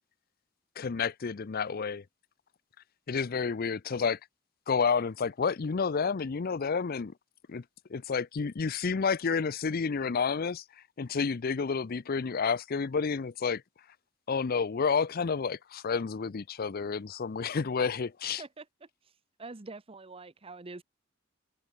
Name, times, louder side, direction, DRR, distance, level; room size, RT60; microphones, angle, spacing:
voice 1, 0.8-2.0 3.1-4.2 4.7-7.1 7.5-7.6 7.9-10.6 11.0-13.6 14.3-18.4, left 5 dB, 50° left, 0.5 m, -30 dB
voice 2, 18.4-18.9 19.4-20.8, right 3 dB, 30° right, 0.9 m, -45 dB
head